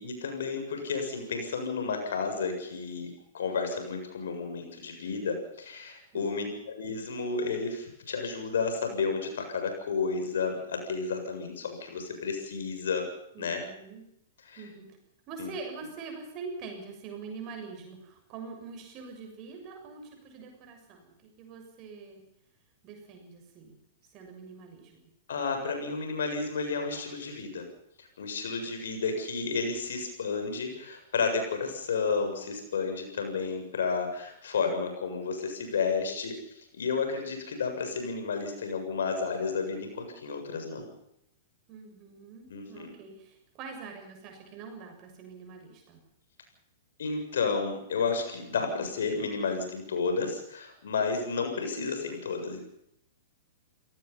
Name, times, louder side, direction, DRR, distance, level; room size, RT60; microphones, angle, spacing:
voice 1, 0.0-13.1 13.4-13.6 14.4-14.6 15.4-15.5 25.3-27.6 28.0-40.9 42.5-42.9 47.0-52.6, left 4 dB, 60° left, 5 dB, 7.5 m, -32 dB
voice 2, 6.1-6.5 13.3-14.0 14.6-14.9 15.3-22.2 22.8-23.8 24.1-25.1 41.7-46.0, right 4 dB, 35° right, 3 dB, 7.1 m, -44 dB
28.5 x 18.5 x 5.7 m, 0.77 s
figure-of-eight pair, 105°, 0 cm